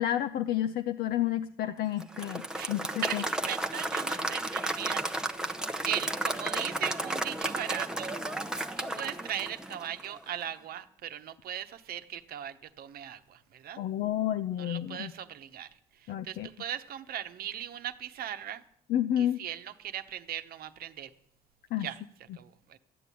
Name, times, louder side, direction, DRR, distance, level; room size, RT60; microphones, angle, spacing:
voice 1, 0.0-2.8 3.1-3.2 13.8-15.1 16.1-16.5 18.9-19.4 21.7-21.9, left 11 dB, 70° left, 11 dB, 0.6 m, -30 dB
Applause / Crowd, 2.0-10.2, right 1 dB, 5° right, 0.8 m, -33 dB
voice 2, 3.0-8.1 8.8-13.8 14.6-18.6 19.2-21.1 21.8-22.0 22.3-22.8, right 10 dB, 60° right, 10 dB, 1.0 m, -38 dB
14.0 x 9.2 x 8.4 m, 0.74 s
cardioid pair, 110°, 17 cm